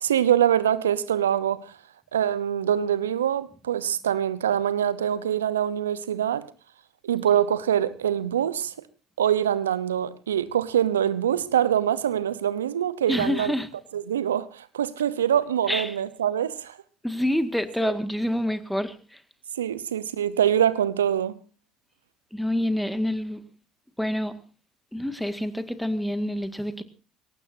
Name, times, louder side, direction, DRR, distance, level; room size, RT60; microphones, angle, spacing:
voice 1, 0.0-1.7 2.1-6.5 7.0-8.7 9.2-13.5 13.9-16.8 17.8-17.9 19.6-21.4, right 10 dB, 85° right, 0.8 m, -24 dB
voice 2, 13.1-13.7 15.7-16.0 17.0-19.2 22.3-23.4 24.0-24.3 24.9-26.8, left 1 dB, ahead, 1.9 m, -27 dB
22.0 x 18.0 x 2.7 m
hypercardioid pair, 60°, 0 cm